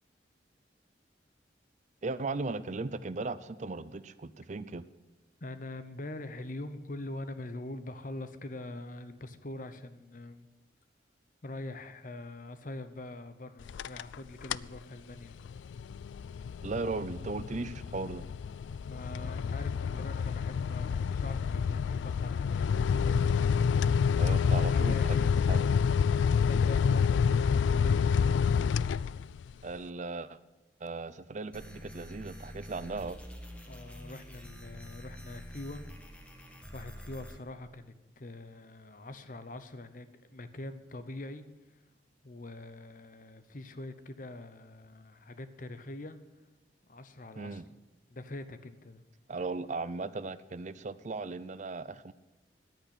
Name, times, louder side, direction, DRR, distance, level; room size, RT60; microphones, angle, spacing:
voice 1, 2.0-4.8 16.6-18.2 24.2-25.2 25.5-25.7 29.6-30.4 30.8-33.2 47.4-47.7 49.3-52.1, right 3 dB, 40° right, 15 dB, 0.5 m, -37 dB
voice 2, 5.4-10.5 11.4-15.4 18.7-24.2 24.5-25.4 26.5-28.1 33.6-35.9 36.7-41.5 42.2-46.2 46.9-47.8 48.1-49.0, left 2 dB, 45° left, 11 dB, 0.9 m, -44 dB
sound 1, 13.6-14.2 14.4-14.8 15.2-29.5, left 6 dB, 90° left, 0.3 m, -28 dB
sound 2, 31.5-37.4, equal, 5° left, 1.4 m, -47 dB
10.5 x 9.0 x 8.3 m, 1.1 s
head